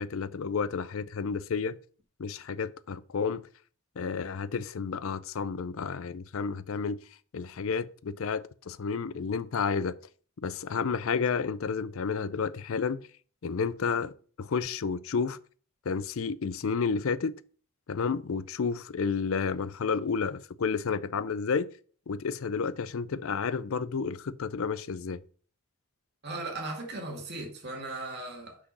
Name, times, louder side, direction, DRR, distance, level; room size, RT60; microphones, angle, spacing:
voice 1, 0.0-1.8 2.2-3.5 4.0-7.0 7.3-10.0 10.4-13.0 13.4-15.4 15.9-17.4 17.9-21.7 22.1-25.2, left 5 dB, 65° left, 0.5 m, -31 dB
voice 2, 26.2-28.6, right 2 dB, 50° right, 2.2 m, -37 dB
6.2 x 6.0 x 5.4 m
head